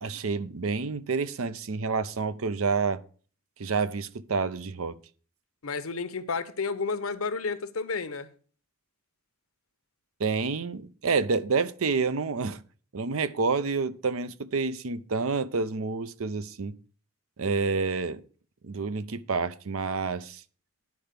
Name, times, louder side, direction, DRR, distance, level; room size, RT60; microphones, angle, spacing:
voice 1, 0.0-3.0 3.6-5.0 10.2-12.6 12.9-16.7 17.4-18.2 18.6-20.4, right 4 dB, 80° right, 0.7 m, -28 dB
voice 2, 5.6-8.3, left 4 dB, 90° left, 0.8 m, -31 dB
10.5 x 4.5 x 6.7 m
head